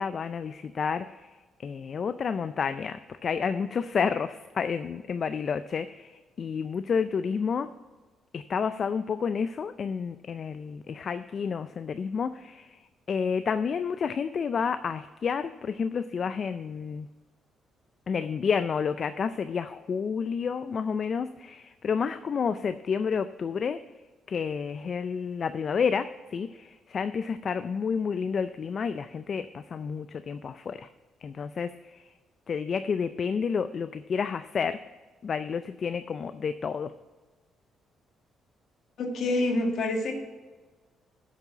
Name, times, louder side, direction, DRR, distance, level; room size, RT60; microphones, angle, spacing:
voice 1, 0.0-7.7 8.3-17.1 18.1-23.8 24.3-30.9 31.2-32.1 32.5-34.8 35.2-36.9, left 6 dB, 50° left, 11 dB, 0.4 m, -30 dB
voice 2, 39.0-40.1, left 2 dB, 65° left, 3 dB, 1.9 m, -27 dB
7.4 x 6.8 x 8.1 m, 1.3 s
cardioid pair, 90°, 0 cm